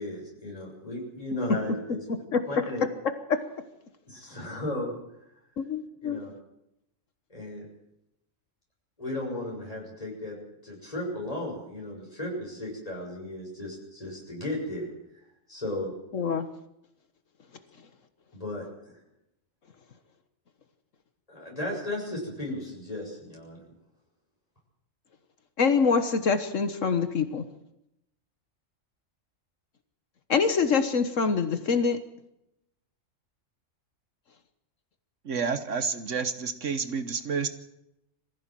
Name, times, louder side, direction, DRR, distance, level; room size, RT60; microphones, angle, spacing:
voice 1, 0.0-2.0 2.5-2.8 4.1-4.9 6.0-6.3 7.3-7.7 9.0-10.4 10.6-14.9 15.5-15.9 18.3-19.0 21.3-23.6, left 1 dB, 30° left, -2 dB, 6.9 m, -35 dB
voice 2, 5.6-6.2 16.1-16.5 25.6-27.4 30.3-32.0, left 5 dB, 70° left, 9 dB, 1.6 m, -25 dB
voice 3, 35.2-37.5, right 5 dB, 70° right, 10 dB, 1.5 m, -29 dB
22.5 x 15.5 x 7.6 m, 0.84 s
omnidirectional pair, 1.3 m